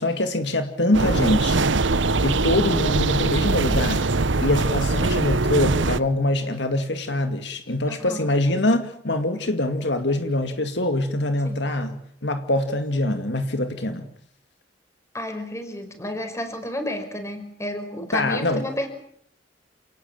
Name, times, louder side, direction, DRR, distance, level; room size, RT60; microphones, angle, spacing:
voice 1, 0.0-1.7 2.0-4.1 4.4-14.1 18.1-18.6, left 1 dB, 65° left, 8 dB, 2.2 m, -24 dB
sound 1, 0.9-6.0, right 3 dB, 80° right, 1.1 m, -22 dB
voice 2, 7.9-8.3 11.4-11.6 15.1-18.9, left 1 dB, 15° left, 7 dB, 5.2 m, -31 dB
28.5 x 18.5 x 9.1 m, 0.65 s
head